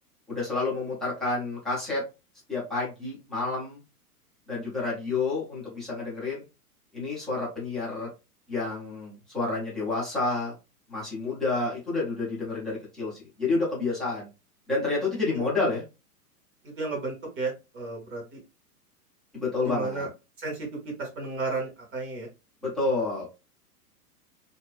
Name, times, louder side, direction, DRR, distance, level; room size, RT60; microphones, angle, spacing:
voice 1, 0.3-2.0 2.5-3.8 4.5-6.4 6.9-8.1 8.5-10.5 10.9-14.3 14.7-15.8 19.3-20.1 22.6-23.2, left 3 dB, ahead, -8 dB, 0.4 m, -29 dB
voice 2, 16.8-18.4 19.7-20.1 20.4-20.7 21.0-22.3, right 3 dB, 25° right, -1 dB, 1.0 m, -33 dB
2.5 x 2.2 x 2.3 m, 0.28 s
figure-of-eight pair, 105°, 47 cm